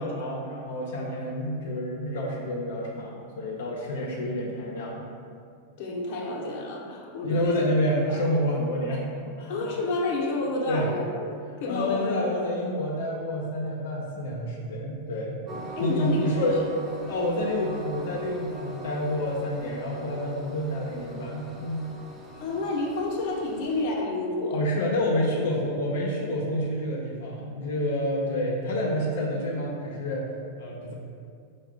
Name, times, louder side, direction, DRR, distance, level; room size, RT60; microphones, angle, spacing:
voice 1, 0.0-5.1 7.2-9.1 9.4-9.5 10.7-10.9 11.7-16.6 17.1-21.9 24.5-30.3 30.6-30.9, left 1 dB, 80° left, -3 dB, 0.6 m, -28 dB
voice 2, 5.8-7.6 8.1-8.2 9.5-11.1 11.6-12.2 15.8-16.3 22.4-24.6, left 2 dB, 55° left, -2 dB, 0.8 m, -29 dB
Train, 15.5-23.8, right 2 dB, 25° right, 0.7 m, -41 dB
4.7 x 2.2 x 4.6 m, 2.3 s
hypercardioid pair, 120°, 0 cm